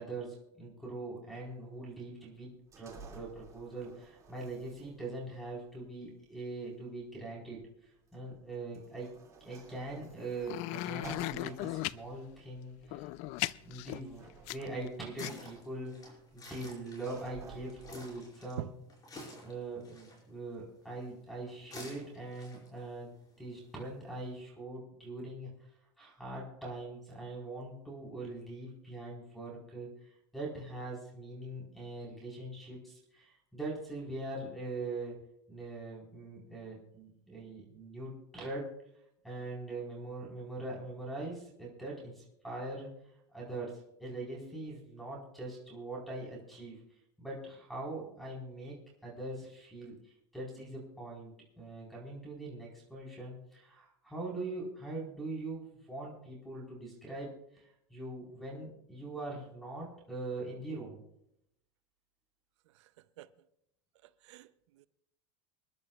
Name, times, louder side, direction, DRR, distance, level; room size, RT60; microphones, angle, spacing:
voice 1, 0.0-2.5 2.8-7.6 8.1-9.1 9.4-13.1 13.4-14.2 14.5-15.9 16.3-18.7 19.4-23.1 23.4-25.5 26.0-29.9 30.3-35.2 35.5-38.7 39.2-42.9 43.3-46.8 47.2-48.8 49.0-49.9 50.3-57.6 57.9-61.0, right 2 dB, ahead, 4.2 m, -42 dB
sound 1, 1.3-18.2, right 5 dB, 20° right, 2.4 m, -55 dB
sound 2, 10.5-12.0 12.8-14.9 15.2-15.3, left 18 dB, 50° left, 0.4 m, -36 dB
sound 3, 14.8-24.5, left 1 dB, 25° left, 5.2 m, -53 dB
voice 2, 64.0-64.9, right 13 dB, 85° right, 0.7 m, -45 dB
27.5 x 11.0 x 2.4 m
supercardioid pair, 135°, 15 cm